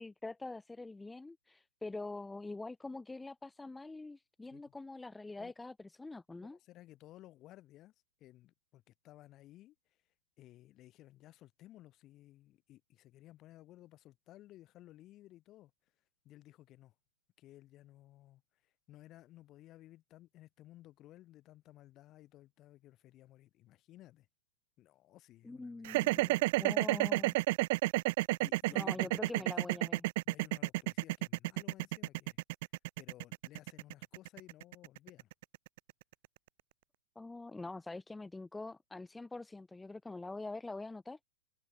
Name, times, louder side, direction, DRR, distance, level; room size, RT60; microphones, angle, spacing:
voice 1, 0.0-6.6 25.4-27.4 28.7-30.1 37.2-41.2, left 3 dB, 5° left, 2.6 m, -45 dB
voice 2, 6.4-7.9 8.2-9.7 10.4-15.7 16.2-16.9 17.4-24.3 24.8-26.5 28.4-29.8 30.2-32.4 33.0-35.3, left 15 dB, 30° left, 6.7 m, -57 dB
sound 1, 25.8-36.0, right 20 dB, 45° right, 1.0 m, -31 dB
figure-of-eight pair, 105°, 0 cm